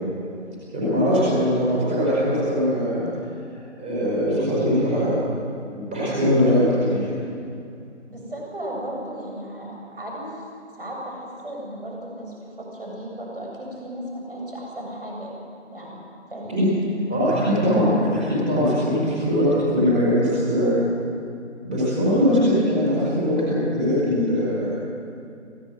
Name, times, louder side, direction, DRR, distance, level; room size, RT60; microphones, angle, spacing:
voice 1, 0.7-3.0 3.8-5.2 5.7-7.1 16.5-16.6 17.1-20.7 21.6-24.7, equal, 10° right, -9 dB, 4.5 m, -21 dB
voice 2, 8.1-10.4 10.7-15.3 15.7-16.0 16.3-16.6, right 1 dB, 50° right, -1 dB, 7.9 m, -35 dB
25.5 x 17.0 x 8.0 m, 2.5 s
figure-of-eight pair, 175°, 36 cm